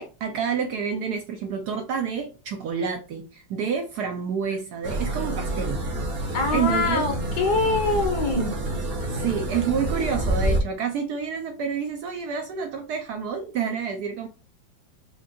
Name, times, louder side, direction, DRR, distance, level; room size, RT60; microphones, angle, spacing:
voice 1, 0.0-5.8 6.5-7.0 9.1-14.3, right 6 dB, 70° right, 4 dB, 1.0 m, -28 dB
sound 1, 4.8-10.6, right 1 dB, 45° right, 0.9 m, -28 dB
voice 2, 6.3-8.5, left 3 dB, 60° left, 3 dB, 1.5 m, -24 dB
5.1 x 2.4 x 2.6 m, 0.31 s
omnidirectional pair, 2.1 m